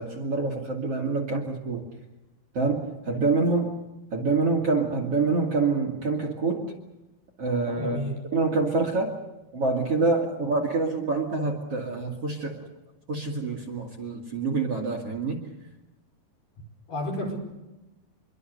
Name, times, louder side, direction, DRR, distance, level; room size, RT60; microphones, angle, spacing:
voice 1, 0.0-1.8 2.5-3.7 4.1-6.7 7.4-8.0 8.3-9.1 9.5-12.6 13.1-15.4, right 3 dB, 40° right, 3 dB, 3.0 m, -26 dB
voice 2, 7.8-8.2 16.9-17.4, left 1 dB, 55° left, 0 dB, 6.7 m, -31 dB
26.5 x 23.0 x 6.8 m, 1.0 s
omnidirectional pair, 4.7 m